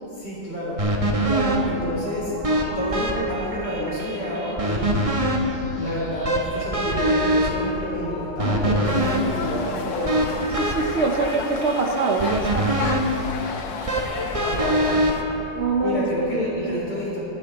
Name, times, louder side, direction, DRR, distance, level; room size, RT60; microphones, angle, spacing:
voice 1, 0.2-0.8 1.7-2.3 2.8-5.1 5.8-10.3 14.4-14.9 15.8-17.2, left 1 dB, 65° left, -6 dB, 4.4 m, -29 dB
sound 1, 0.8-16.0, equal, 20° right, 1.1 m, -25 dB
voice 2, 1.1-1.8 8.4-8.9 10.5-12.5 15.5-16.8, right 4 dB, 60° right, 3 dB, 0.7 m, -25 dB
sound 2, 8.8-15.2, left 5 dB, 85° left, 1.6 m, -32 dB
22.5 x 8.1 x 4.0 m, 2.9 s
omnidirectional pair, 2.0 m